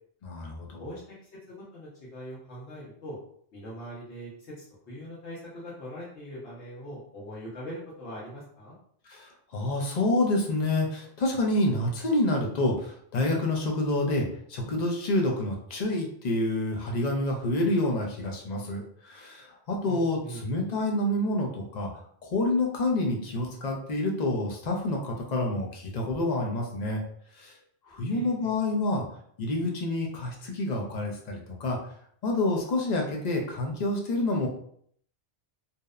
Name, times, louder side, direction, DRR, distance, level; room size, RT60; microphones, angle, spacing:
voice 1, 0.3-0.8 9.1-21.9 22.2-27.0 27.4-27.5 27.9-29.0 29.4-31.8 32.2-34.5, left 2 dB, 50° left, 0 dB, 0.5 m, -28 dB
voice 2, 0.8-3.2 3.5-4.5 4.9-8.8 19.8-20.4 28.1-28.5, equal, 85° left, -7 dB, 1.1 m, -42 dB
2.7 x 2.0 x 2.3 m, 0.63 s
omnidirectional pair, 1.1 m